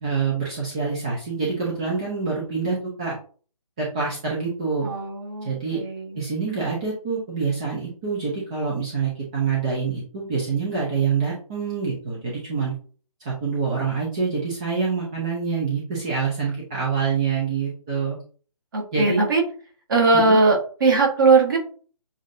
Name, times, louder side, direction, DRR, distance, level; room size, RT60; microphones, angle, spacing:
voice 1, 0.0-3.2 3.8-4.9 5.4-5.8 6.2-12.7 13.2-18.2 18.9-19.2 20.1-20.4, right 5 dB, 10° right, -5 dB, 0.4 m, -26 dB
voice 2, 4.8-6.2 18.7-19.4 19.9-21.6, right 3 dB, 35° right, 0 dB, 1.4 m, -19 dB
7.1 x 2.6 x 2.6 m, 0.42 s
figure-of-eight pair, 145°, 19 cm